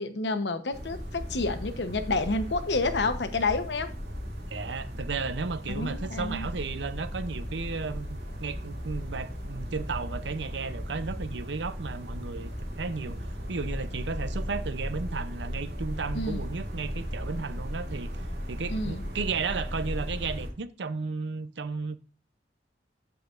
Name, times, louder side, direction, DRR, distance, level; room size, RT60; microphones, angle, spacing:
voice 1, 0.0-3.9 5.7-6.5 16.1-16.5 18.7-19.0, left 3 dB, 75° left, 1.0 m, -29 dB
sound 1, 0.7-20.5, equal, 65° right, 2.5 m, -36 dB
voice 2, 4.5-12.5 12.8-13.2 13.5-18.1 18.5-22.0, right 4 dB, 85° right, 0.6 m, -34 dB
13.5 x 5.0 x 2.5 m
head